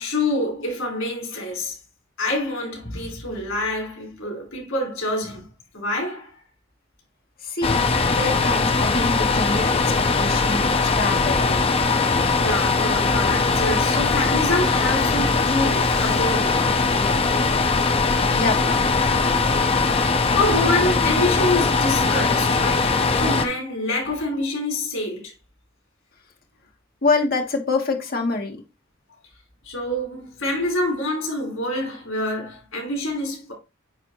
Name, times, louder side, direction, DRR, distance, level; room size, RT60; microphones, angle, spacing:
voice 1, 0.0-1.7 2.2-5.5 5.7-6.4 12.3-17.2 19.1-19.4 19.8-25.3 29.6-33.5, left 1 dB, 85° left, 4.2 m, -26 dB
voice 2, 7.4-7.8 8.1-11.9 18.3-18.9 27.0-28.6, left 3 dB, 45° left, 1.4 m, -26 dB
sound 1, 7.6-23.5, left 4 dB, 30° left, 0.6 m, -20 dB
9.6 x 3.4 x 3.0 m
head